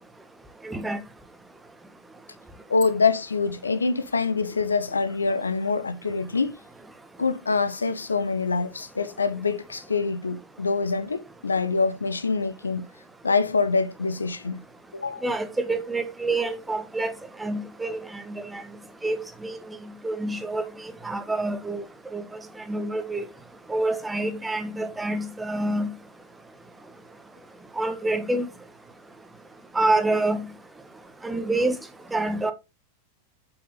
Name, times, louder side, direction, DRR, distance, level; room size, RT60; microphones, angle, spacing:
voice 1, 0.6-1.0 15.2-17.1 17.4-18.6 19.0-19.6 20.0-20.7 21.0-21.8 22.1-22.4 22.7-23.3 23.7-25.9 27.8-28.5 29.7-30.5 31.2-31.8 32.1-32.5, right 2 dB, 10° right, 1.3 m, -27 dB
voice 2, 2.7-6.6 7.2-12.9 13.2-14.6 14.9-15.3, left 4 dB, 75° left, 0.8 m, -25 dB
8.1 x 5.9 x 3.8 m
figure-of-eight pair, 90°, 0 cm